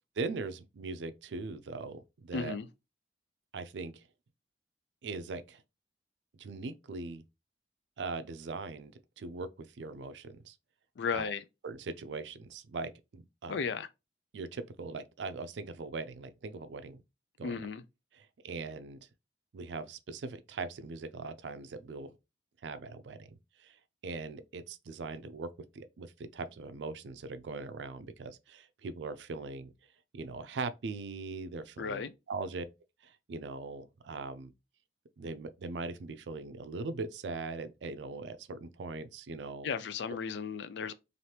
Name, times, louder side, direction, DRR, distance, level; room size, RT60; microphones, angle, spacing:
voice 1, 0.2-2.6 3.5-4.0 5.0-5.6 6.4-7.2 8.0-10.6 11.1-11.3 11.6-13.6 14.3-17.0 17.4-17.6 18.2-19.0 19.5-22.1 22.6-23.8 24.0-25.5 25.7-29.7 30.1-32.6 33.0-34.5 35.2-39.7, right 3 dB, 85° right, 0.4 m, -40 dB
voice 2, 2.3-2.7 11.0-11.4 13.5-13.9 17.4-17.8 31.8-32.1 39.6-40.9, left 5 dB, 75° left, 0.4 m, -34 dB
2.8 x 2.5 x 3.2 m
head